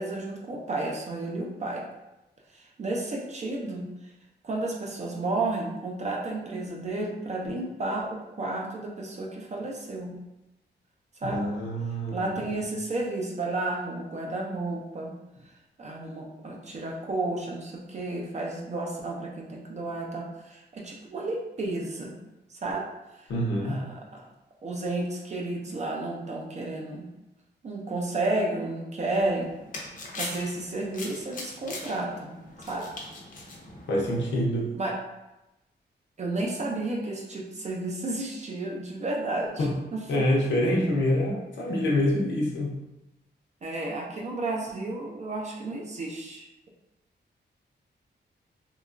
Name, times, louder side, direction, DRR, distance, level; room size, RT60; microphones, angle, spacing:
voice 1, 0.0-1.9 2.5-3.9 4.4-10.1 11.2-11.4 12.1-15.1 15.8-22.2 22.5-22.9 23.2-23.3 23.6-24.2 24.6-27.1 27.6-29.5 30.2-32.9 34.7-35.0 36.2-40.0 43.6-46.5, right 2 dB, 40° right, -1 dB, 0.4 m, -32 dB
voice 2, 11.2-12.3 23.3-23.8 33.9-34.7 39.6-39.7 40.1-42.8, left 1 dB, 90° left, -3 dB, 0.6 m, -26 dB
sound 1, 29.2-34.4, left 2 dB, 50° left, 0.5 m, -41 dB
2.8 x 2.3 x 2.4 m, 0.95 s
wide cardioid pair, 165°, 18 cm